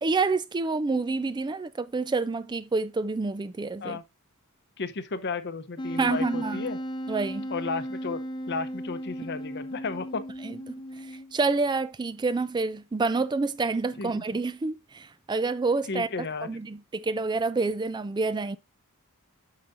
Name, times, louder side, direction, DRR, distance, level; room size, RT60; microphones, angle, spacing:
voice 1, 0.0-4.0 6.0-6.6 7.1-7.5 10.4-10.6 11.3-16.1 16.4-18.6, right 3 dB, 20° right, 0.3 m, -28 dB
voice 2, 4.8-6.8 7.5-8.2 8.5-10.2 14.0-14.2 15.9-16.5, left 4 dB, 50° left, 0.8 m, -33 dB
Wind instrument woodwind instrument, 5.8-11.4, equal, 20° left, 0.7 m, -36 dB
8.9 x 6.6 x 2.6 m
head